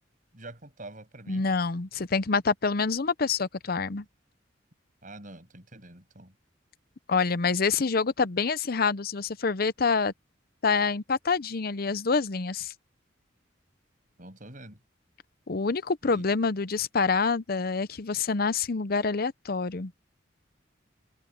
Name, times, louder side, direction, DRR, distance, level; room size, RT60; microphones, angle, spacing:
voice 1, 0.3-1.5 5.0-6.3 14.2-14.8 16.0-16.2, right 2 dB, 45° right, 7.1 m, -46 dB
voice 2, 1.3-4.0 7.1-10.1 10.6-12.7 15.5-19.9, left 4 dB, 50° left, 0.7 m, -26 dB
head